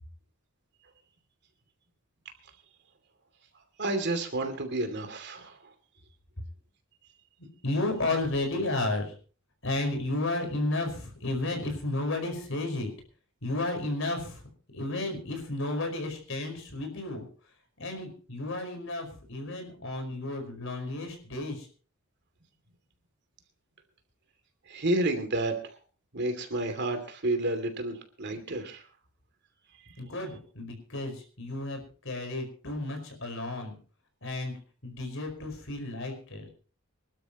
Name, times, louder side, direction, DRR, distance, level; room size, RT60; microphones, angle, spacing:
voice 1, 3.8-5.6 24.7-25.5 26.1-28.8, right 2 dB, 55° right, 7 dB, 2.7 m, -30 dB
voice 2, 7.6-9.1 9.6-12.9 13.4-14.4 14.7-17.2 17.8-21.6 30.0-31.8 32.0-33.7 34.2-34.5 34.8-36.5, left 2 dB, 65° left, 5 dB, 5.0 m, -32 dB
25.5 x 12.5 x 3.0 m, 0.40 s
head